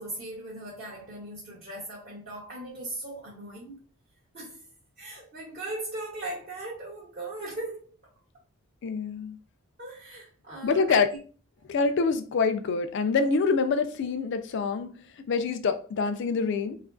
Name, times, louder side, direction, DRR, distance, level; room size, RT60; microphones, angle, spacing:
voice 1, 0.0-3.8 4.3-4.6 5.0-7.9 9.8-11.2, right 2 dB, 40° right, 0.6 m, -39 dB
voice 2, 8.8-9.4 10.6-11.1 11.7-16.8, left 4 dB, 55° left, 0.3 m, -26 dB
2.9 x 2.4 x 2.2 m
head